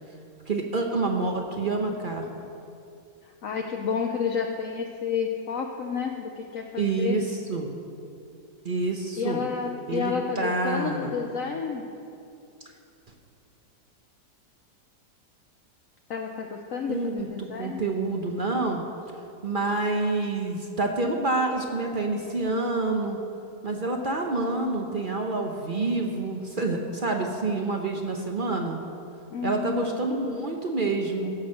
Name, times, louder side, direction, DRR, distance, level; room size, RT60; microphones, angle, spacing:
voice 1, 0.5-2.3 6.8-7.7 8.6-9.4 9.9-11.1 16.9-18.8 19.4-23.2 23.6-28.8 29.4-31.3, right 3 dB, 40° right, 2 dB, 0.8 m, -27 dB
voice 2, 3.4-7.2 9.2-11.9 16.1-17.8 29.3-30.0, left 6 dB, 60° left, 3 dB, 1.0 m, -30 dB
16.0 x 6.3 x 6.4 m, 2.5 s
omnidirectional pair, 1.8 m